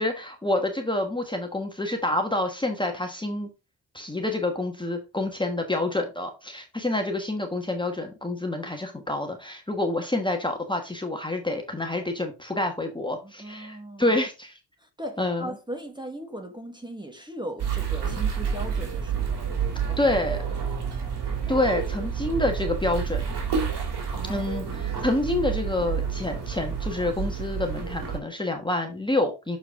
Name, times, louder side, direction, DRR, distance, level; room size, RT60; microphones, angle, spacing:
voice 1, 0.0-3.5 3.9-14.6 15.2-15.5 20.0-20.4 21.5-23.2 24.3-29.6, left 2 dB, 10° left, 1.3 m, -27 dB
voice 2, 13.2-14.2 14.8-19.3 19.7-20.0 24.1-24.5 24.8-25.0, equal, 10° right, 1.5 m, -38 dB
sound 1, 17.6-28.2, right 7 dB, 75° right, 2.5 m, -29 dB
6.8 x 4.6 x 3.6 m
cardioid pair, 85°, 41 cm